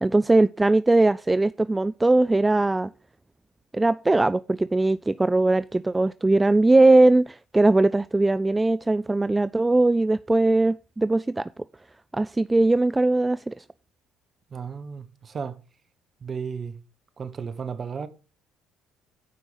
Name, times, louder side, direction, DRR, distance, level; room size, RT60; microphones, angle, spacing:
voice 1, 0.0-2.9 3.7-11.5 12.1-13.6, right 2 dB, 15° right, 0.3 m, -20 dB
voice 2, 14.5-15.6 16.2-16.8 17.2-18.1, right 6 dB, 40° right, 1.2 m, -34 dB
9.6 x 5.2 x 5.7 m
hypercardioid pair, 55°, 0 cm